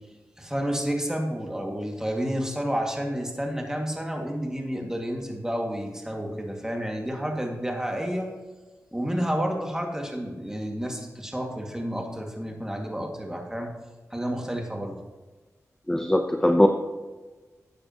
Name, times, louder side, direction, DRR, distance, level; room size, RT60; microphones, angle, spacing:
voice 1, 0.4-8.3 8.9-13.7 14.1-14.9, equal, 10° right, 1 dB, 2.1 m, -30 dB
voice 2, 15.9-16.7, left 1 dB, 10° left, 5 dB, 0.7 m, -20 dB
13.0 x 8.5 x 3.0 m, 1.3 s
cardioid pair, 65°, 6 cm